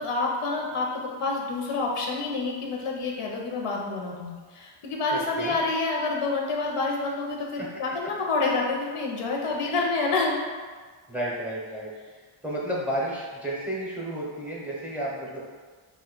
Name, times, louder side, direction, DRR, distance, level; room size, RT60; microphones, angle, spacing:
voice 1, 0.0-10.4, left 3 dB, 85° left, -1 dB, 0.7 m, -28 dB
voice 2, 5.1-5.6 7.6-7.7 11.1-11.9 12.4-15.4, right 1 dB, 5° right, -5 dB, 0.5 m, -32 dB
2.6 x 2.3 x 3.7 m, 1.5 s
wide cardioid pair, 125°, 50 cm